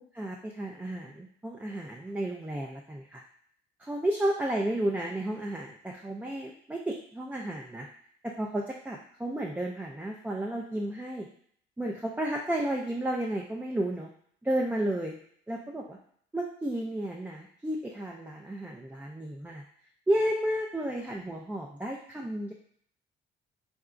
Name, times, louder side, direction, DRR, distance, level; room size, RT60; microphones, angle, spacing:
voice 1, 0.1-3.2 3.8-7.9 8.2-11.3 11.8-14.1 14.4-15.2 15.5-16.0 16.3-19.6 20.1-22.5, right 1 dB, 10° right, -1 dB, 0.3 m, -32 dB
3.7 x 2.2 x 2.4 m, 0.62 s
cardioid pair, 90°, 20 cm